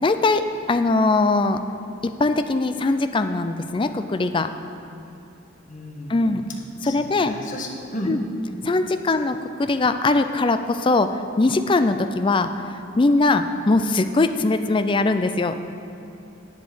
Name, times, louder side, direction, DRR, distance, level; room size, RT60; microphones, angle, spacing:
voice 1, 0.0-1.6 2.2-4.5 6.1-6.4 6.8-7.4 8.1-8.2 8.6-11.1 11.4-12.5 13.0-15.6, left 3 dB, 25° left, 9 dB, 0.4 m, -21 dB
voice 2, 5.7-6.4 6.8-8.2, left 1 dB, 40° left, 0 dB, 1.3 m, -33 dB
8.3 x 8.1 x 6.9 m, 2.8 s
head